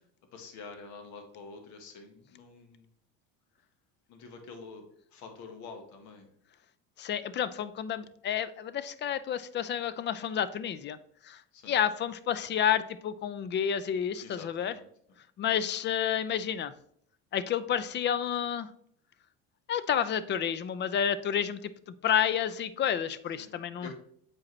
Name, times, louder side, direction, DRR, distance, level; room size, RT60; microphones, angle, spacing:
voice 1, 0.3-2.9 4.1-6.3 11.5-11.7 14.2-14.9 23.4-23.5 23.8-23.9, left 4 dB, 65° left, 5 dB, 1.5 m, -47 dB
voice 2, 7.0-11.0 11.2-11.4 11.7-14.7 15.4-16.7 17.3-18.7 19.7-21.7 22.0-23.9, left 9 dB, 35° left, 15 dB, 0.4 m, -30 dB
7.3 x 4.8 x 3.1 m, 0.65 s
supercardioid pair, 95°, 32 cm